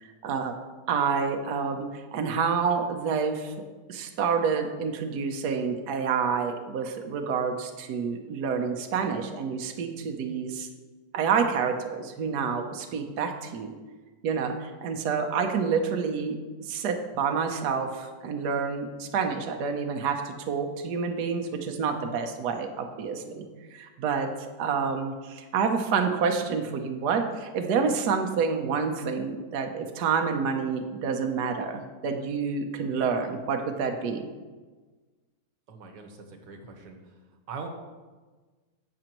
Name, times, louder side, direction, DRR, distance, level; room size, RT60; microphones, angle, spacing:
voice 1, 0.0-0.5 0.9-3.5 3.9-10.7 11.1-13.7 14.2-23.5 23.7-24.3 24.6-34.3, right 5 dB, 70° right, 4 dB, 1.3 m, -28 dB
voice 2, 35.7-37.2 37.5-37.7, right 5 dB, 90° right, 4 dB, 1.7 m, -42 dB
11.0 x 7.6 x 3.0 m, 1.3 s
omnidirectional pair, 1.9 m